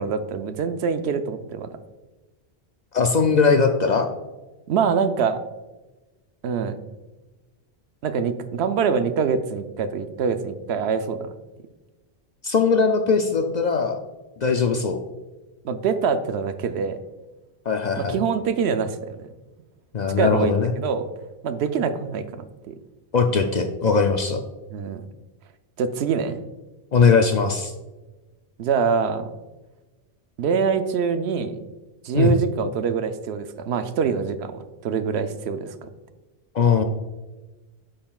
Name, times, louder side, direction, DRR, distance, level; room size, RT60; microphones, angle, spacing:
voice 1, 0.0-1.7 4.7-5.4 6.4-6.8 8.0-11.3 15.6-17.0 18.0-19.3 20.2-21.1 21.4-22.2 22.7-22.8 24.7-25.1 25.8-26.4 28.6-29.3 30.4-31.6 32.0-35.9, right 6 dB, 80° right, 10 dB, 0.8 m, -24 dB
voice 2, 2.9-4.1 12.4-14.0 14.4-15.0 17.7-18.2 19.9-20.7 23.1-24.4 26.9-27.7 32.1-32.4 36.5-36.8, left 5 dB, 55° left, 5 dB, 0.5 m, -20 dB
8.6 x 5.7 x 2.3 m, 1.1 s
omnidirectional pair, 1.1 m